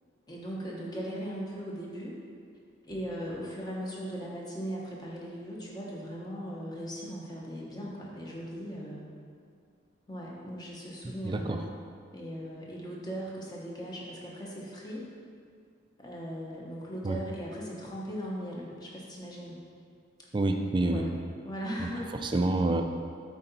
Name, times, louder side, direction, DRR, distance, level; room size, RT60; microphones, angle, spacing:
voice 1, 0.3-2.2 2.9-9.1 10.1-11.7 12.1-15.1 16.0-19.6 20.8-21.1 21.4-22.1, equal, 20° left, -4 dB, 0.9 m, -38 dB
voice 2, 11.2-11.6 17.0-17.2 20.3-21.2 22.2-22.8, right 2 dB, 25° right, 5 dB, 0.3 m, -27 dB
8.4 x 3.8 x 4.1 m, 2.2 s
head